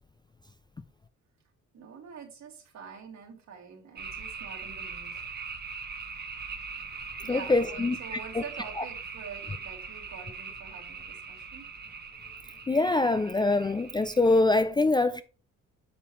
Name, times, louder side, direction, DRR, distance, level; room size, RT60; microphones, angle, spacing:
voice 1, 1.7-5.3 7.2-11.7, right 6 dB, 65° right, 2.2 m, -46 dB
sound 1, 4.0-14.4, right 5 dB, 35° right, 1.2 m, -41 dB
voice 2, 7.3-8.0 12.7-15.2, left 2 dB, 15° left, 0.3 m, -24 dB
8.5 x 5.8 x 3.1 m
cardioid pair, 110°, 31 cm